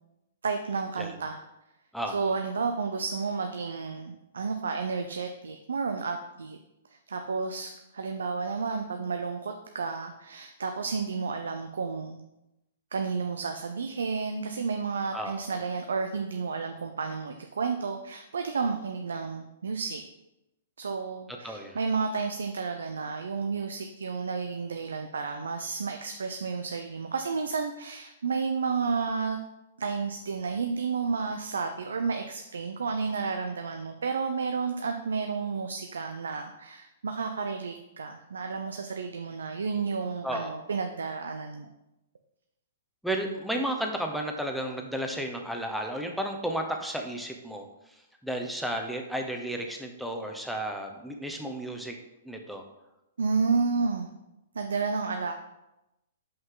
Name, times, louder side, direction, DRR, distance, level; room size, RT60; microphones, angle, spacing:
voice 1, 0.4-1.4 2.1-6.6 7.1-12.2 12.9-20.0 20.8-29.4 29.8-41.7 53.2-54.1 54.5-55.3, right 5 dB, 85° right, 6 dB, 0.5 m, -31 dB
voice 2, 15.1-15.6 21.4-21.8 40.2-40.6 43.0-47.7 48.2-52.0 52.2-52.6, right 1 dB, ahead, 2 dB, 0.8 m, -33 dB
5.5 x 5.5 x 3.9 m, 0.92 s
hypercardioid pair, 135°, 0 cm